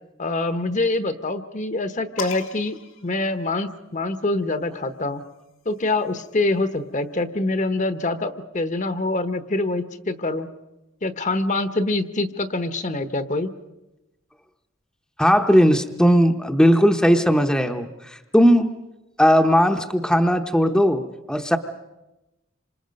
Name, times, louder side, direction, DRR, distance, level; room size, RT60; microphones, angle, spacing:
voice 1, 0.2-5.2 5.6-10.5 11.0-13.5, left 2 dB, 35° left, 10 dB, 1.0 m, -25 dB
sound 1, 2.2-4.0 5.1-6.7, left 8 dB, 70° left, 2.2 m, -40 dB
voice 2, 15.2-18.7 19.2-21.6, equal, 5° left, 5 dB, 0.8 m, -18 dB
28.0 x 26.0 x 5.3 m, 0.99 s
head